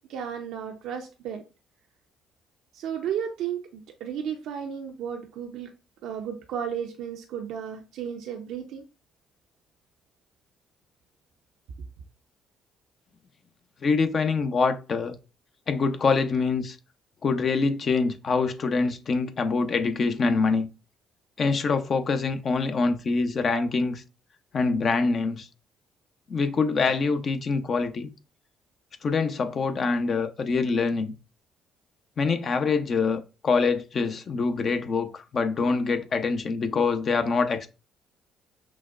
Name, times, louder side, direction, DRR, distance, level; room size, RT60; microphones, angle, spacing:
voice 1, 0.1-1.4 2.7-5.7 6.0-8.8, right 8 dB, 70° right, 0.5 m, -33 dB
voice 2, 13.8-15.1 15.7-16.8 17.2-20.7 21.4-24.0 24.5-25.5 26.3-28.1 29.0-31.1 32.2-37.7, left 4 dB, 50° left, 0.6 m, -25 dB
6.0 x 2.2 x 2.4 m
hypercardioid pair, 50°, 0 cm